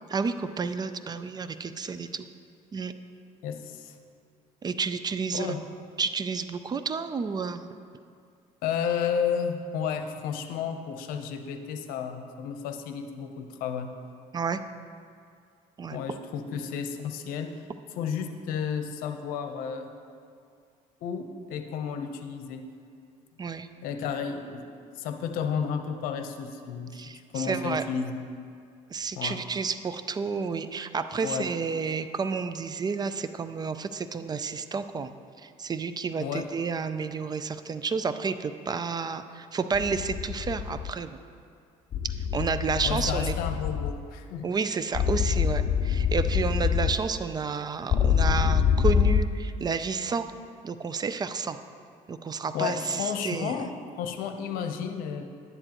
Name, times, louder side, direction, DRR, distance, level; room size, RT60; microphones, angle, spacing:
voice 1, 0.1-2.3 2.7-2.9 4.6-5.5 6.0-7.6 14.3-14.6 15.8-16.0 23.4-23.7 26.9-27.8 28.9-35.1 35.4-41.1 42.3-43.3 44.4-50.3 50.6-51.6 52.1-53.5, right 5 dB, 30° right, 11 dB, 0.4 m, -30 dB
voice 2, 3.4-4.0 5.3-5.6 8.6-13.9 15.9-17.5 18.0-19.9 21.0-22.6 23.8-24.6 25.0-27.0 27.3-28.3 29.1-29.4 31.2-31.5 36.2-36.5 42.8-44.4 52.5-53.7 54.0-55.2, left 7 dB, 80° left, 6 dB, 0.8 m, -32 dB
sound 1, 39.7-40.9 41.9-43.9 44.9-47.0 47.9-49.2, left 8 dB, 40° left, 0.4 m, -25 dB
11.0 x 10.0 x 3.0 m, 2.3 s
cardioid pair, 105°, 15 cm